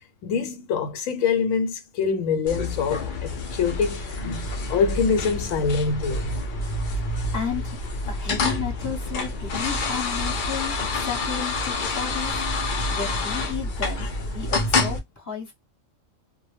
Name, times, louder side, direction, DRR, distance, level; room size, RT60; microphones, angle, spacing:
voice 1, 0.2-6.4, left 5 dB, 85° left, 1.0 m, -25 dB
sound 1, 2.5-15.0, left 2 dB, 60° left, 0.5 m, -28 dB
voice 2, 7.0-12.4 12.9-15.5, left 7 dB, 15° left, 0.9 m, -33 dB
2.2 x 2.1 x 3.1 m
omnidirectional pair, 1.4 m